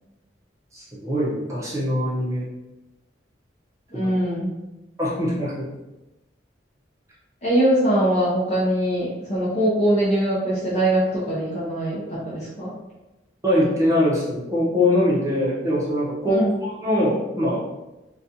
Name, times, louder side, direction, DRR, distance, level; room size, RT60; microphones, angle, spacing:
voice 1, 0.7-2.5 3.9-4.1 5.0-5.7 13.4-17.7, left 1 dB, 15° right, -6 dB, 0.7 m, -22 dB
voice 2, 3.9-4.5 7.4-12.7 16.3-16.5, right 1 dB, 40° left, -8 dB, 0.7 m, -22 dB
4.0 x 2.3 x 2.7 m, 1.0 s
head